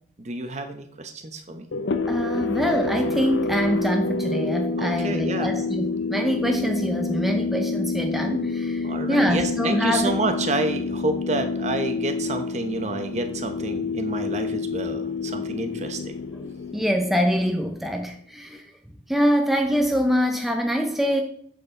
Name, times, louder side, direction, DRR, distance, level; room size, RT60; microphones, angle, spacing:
voice 1, 0.2-1.7 4.8-5.5 8.8-16.1, right 2 dB, 40° right, 7 dB, 0.9 m, -29 dB
sound 1, 1.7-18.0, left 3 dB, 80° left, 0.6 m, -28 dB
voice 2, 2.1-10.1 16.4-18.6 19.1-21.2, equal, ahead, 3 dB, 0.5 m, -24 dB
7.7 x 6.7 x 3.8 m, 0.66 s
head